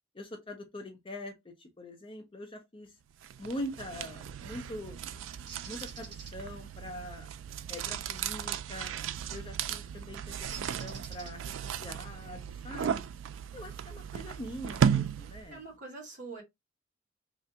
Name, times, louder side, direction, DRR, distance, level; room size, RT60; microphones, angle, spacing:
voice 1, 0.1-2.9 3.4-5.1 5.6-7.3 7.7-8.9 9.3-10.2 10.6-13.1 13.5-15.6, left 1 dB, 25° left, 0.6 m, -43 dB
sound 1, 3.2-15.6, right 8 dB, 90° right, 0.3 m, -35 dB
Bird, 5.5-6.3 8.9-9.2 10.5-11.7, right 6 dB, 60° right, 1.0 m, -47 dB
voice 2, 15.5-16.4, right 3 dB, 40° right, 1.9 m, -44 dB
3.2 x 2.5 x 2.8 m
head